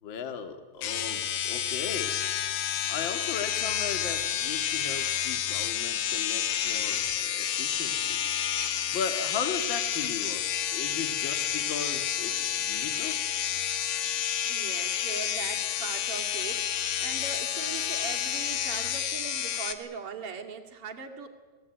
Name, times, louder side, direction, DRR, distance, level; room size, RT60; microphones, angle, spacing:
voice 1, 0.0-2.2 2.9-8.2 8.9-10.4 10.7-13.2, left 6 dB, 45° left, 7 dB, 1.5 m, -36 dB
sound 1, 0.8-19.7, left 10 dB, 70° left, 3.3 m, -30 dB
voice 2, 14.4-21.3, right 5 dB, 40° right, 2 dB, 2.3 m, -40 dB
27.5 x 20.5 x 9.0 m, 1.4 s
omnidirectional pair, 5.0 m